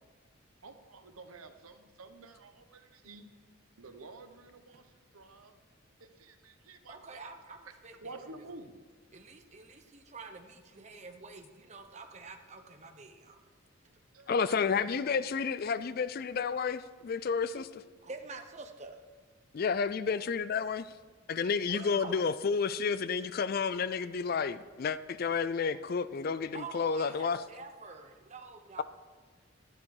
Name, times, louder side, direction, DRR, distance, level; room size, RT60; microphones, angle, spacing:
voice 1, 0.6-3.3 3.8-5.6 6.0-7.3 7.9-8.8 14.1-15.2 15.7-15.8, right 3 dB, 85° right, 1.0 m, -51 dB
voice 2, 6.9-8.0 9.1-13.4 17.5-17.6 18.0-19.0 21.7-22.3 26.5-28.8, right 4 dB, 30° right, 0.9 m, -47 dB
voice 3, 14.3-17.7 19.5-20.9 21.3-27.4, left 5 dB, 45° left, 0.3 m, -31 dB
12.0 x 10.5 x 4.9 m
head